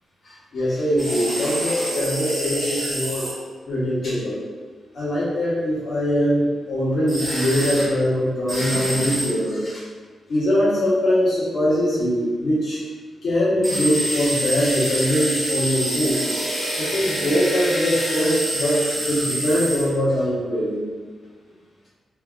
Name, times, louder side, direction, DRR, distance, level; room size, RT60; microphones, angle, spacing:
voice 1, 0.2-3.3 3.6-4.4 4.9-9.8 10.3-12.8 13.2-16.2 16.7-20.9, equal, 60° left, -9 dB, 1.2 m, -22 dB
sound 1, 1.0-3.3 7.1-7.9 8.5-9.3 13.6-19.9, right 1 dB, 15° right, 0.8 m, -27 dB
2.7 x 2.6 x 2.4 m, 1.4 s
cardioid pair, 100°, 0 cm